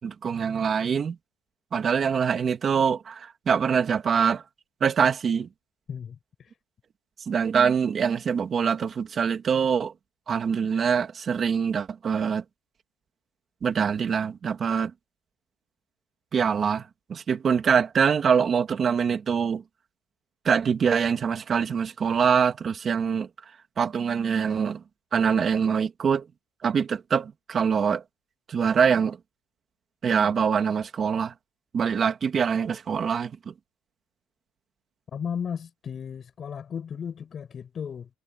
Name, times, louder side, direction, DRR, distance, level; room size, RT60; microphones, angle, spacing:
voice 1, 0.0-1.2 1.7-4.4 4.8-5.5 7.2-9.9 10.3-12.4 13.6-14.9 16.3-19.6 20.4-23.3 23.8-24.8 25.1-26.3 26.6-28.0 28.5-29.2 30.0-31.3 31.7-33.5, right 6 dB, 25° right, 2.8 m, -24 dB
voice 2, 5.9-6.5 35.1-38.1, left 7 dB, 25° left, 7.4 m, -35 dB
cardioid pair, 175°, 0 cm